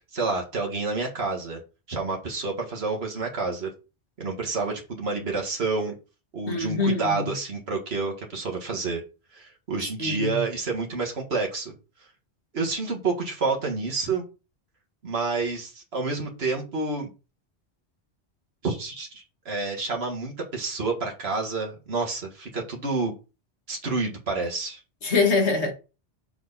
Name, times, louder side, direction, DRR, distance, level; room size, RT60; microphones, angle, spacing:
voice 1, 0.1-1.6 1.9-3.7 4.2-5.9 6.3-9.0 9.3-11.7 12.5-14.2 15.0-17.1 18.6-23.1 23.7-24.8, right 3 dB, 65° right, 2.0 m, -29 dB
voice 2, 6.5-7.2 10.0-10.4 25.0-25.7, left 4 dB, 80° left, 2.0 m, -24 dB
6.8 x 4.7 x 4.1 m
omnidirectional pair, 1.1 m